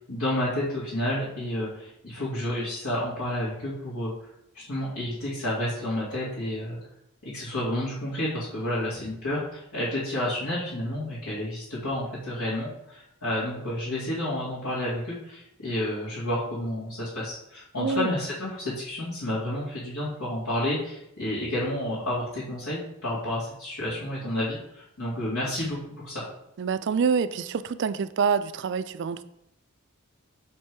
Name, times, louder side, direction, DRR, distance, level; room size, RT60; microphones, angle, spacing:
voice 1, 0.1-4.1 4.5-6.8 7.2-26.2, left 1 dB, 90° left, -11 dB, 2.3 m, -30 dB
voice 2, 17.8-18.1 26.6-29.2, right 6 dB, 55° right, 13 dB, 0.4 m, -26 dB
6.8 x 4.5 x 4.7 m, 0.79 s
head